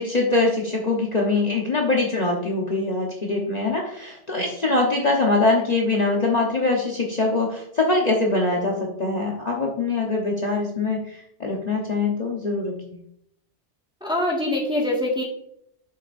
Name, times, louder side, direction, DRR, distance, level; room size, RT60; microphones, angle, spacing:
voice 1, 0.0-12.7, left 3 dB, 40° left, -1 dB, 1.1 m, -23 dB
voice 2, 14.0-15.2, left 1 dB, 5° right, -3 dB, 1.7 m, -24 dB
8.9 x 6.8 x 2.6 m, 0.72 s
omnidirectional pair, 1.1 m